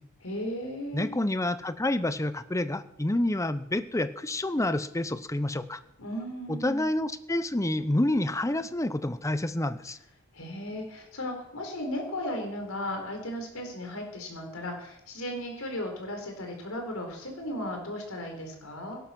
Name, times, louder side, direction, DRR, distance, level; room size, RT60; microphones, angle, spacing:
voice 1, 0.2-1.1 6.0-6.9 10.3-19.0, left 1 dB, 85° left, 3 dB, 4.5 m, -36 dB
voice 2, 0.9-5.8 6.5-10.0, left 1 dB, 15° left, 13 dB, 0.8 m, -28 dB
17.5 x 12.0 x 6.0 m, 0.79 s
head